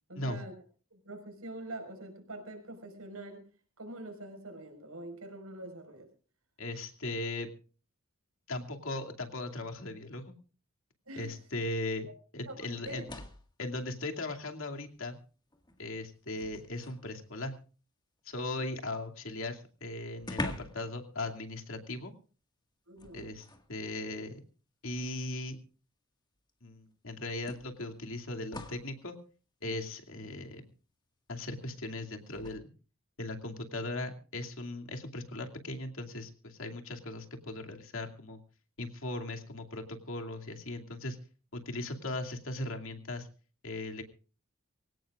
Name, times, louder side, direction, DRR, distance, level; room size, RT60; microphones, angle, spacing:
voice 1, 0.1-0.5 0.9-3.4 3.8-6.1 11.1-11.4 12.1-12.2 12.5-12.6 12.9-13.1 22.9-23.3, right 2 dB, 85° right, 5 dB, 5.2 m, -44 dB
voice 2, 6.6-7.5 8.5-10.3 11.2-12.1 12.3-13.0 13.6-15.2 15.8-17.5 18.3-22.1 23.1-24.4 24.8-25.6 26.6-29.2 29.6-30.7 31.3-32.7 33.2-38.4 38.8-41.2 41.5-43.3 43.6-44.0, left 2 dB, 65° left, 4 dB, 2.6 m, -38 dB
sound 1, 12.8-13.6 14.9-15.0 15.5-17.1 19.2-19.3 19.5-19.6 20.2-20.9 21.2-21.4 23.0-23.7 24.8-24.9 26.5-26.6 27.5-28.9 32.3-32.6, left 1 dB, 20° left, 1.8 m, -43 dB
24.5 x 17.0 x 2.5 m, 0.37 s
head